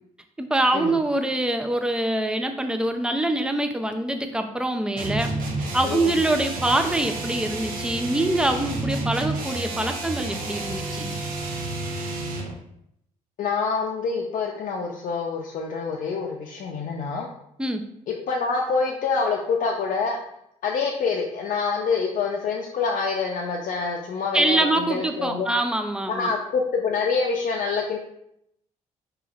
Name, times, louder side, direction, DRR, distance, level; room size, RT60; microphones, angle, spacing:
voice 1, 0.4-5.3 5.7-11.2 17.6-17.9 24.3-26.3, right 1 dB, 5° right, 6 dB, 0.5 m, -24 dB
sound 1, 5.0-12.6, right 2 dB, 70° right, 0.9 m, -30 dB
voice 2, 13.4-17.3 18.3-20.2 20.6-25.5 26.2-28.0, left 4 dB, 65° left, -1 dB, 0.5 m, -26 dB
4.8 x 3.0 x 2.4 m, 0.76 s
supercardioid pair, 70°, 15 cm